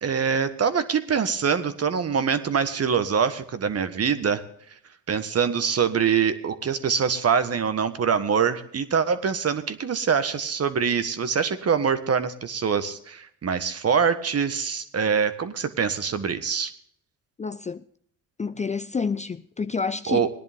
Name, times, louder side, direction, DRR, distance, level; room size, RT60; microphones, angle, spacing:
voice 1, 0.0-4.4 5.1-16.7 20.1-20.3, right 6 dB, 40° right, 1.5 m, -24 dB
voice 2, 17.4-17.8 18.4-20.3, left 5 dB, 20° left, 0.6 m, -29 dB
18.5 x 10.5 x 3.6 m
hypercardioid pair, 60°, 37 cm